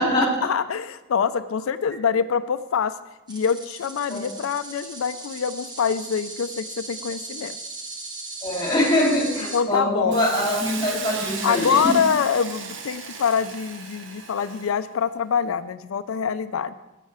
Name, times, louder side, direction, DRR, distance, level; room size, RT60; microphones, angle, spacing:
voice 1, 0.0-3.0 3.3-7.6 9.5-10.2 11.4-16.7, left 6 dB, 75° left, 11 dB, 0.4 m, -25 dB
sound 1, 3.3-9.6, right 3 dB, 20° right, 1.1 m, -37 dB
voice 2, 8.4-11.9, left 1 dB, 20° left, -1 dB, 2.7 m, -23 dB
Hiss, 10.1-14.8, right 5 dB, 60° right, 1.0 m, -35 dB
11.0 x 7.6 x 4.8 m, 1.0 s
head